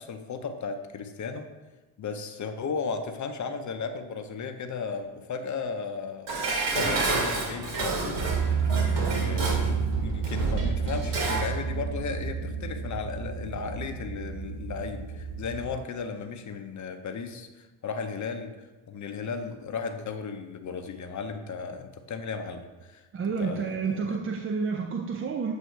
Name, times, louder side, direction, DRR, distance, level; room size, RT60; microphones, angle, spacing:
voice 1, 0.0-1.5 2.0-6.3 6.7-8.5 8.9-18.5 18.9-23.0 23.4-24.2, left 5 dB, 40° left, 7 dB, 0.7 m, -35 dB
Dishes pots and pans, 6.3-11.6 11.9-12.0, right 3 dB, 60° right, 1.6 m, -29 dB
sound 1, 7.5-15.7, right 6 dB, 45° right, 1.6 m, -31 dB
voice 2, 23.1-25.5, right 5 dB, 30° right, 3 dB, 0.5 m, -29 dB
8.0 x 2.7 x 4.5 m, 1.2 s
supercardioid pair, 70°, 47 cm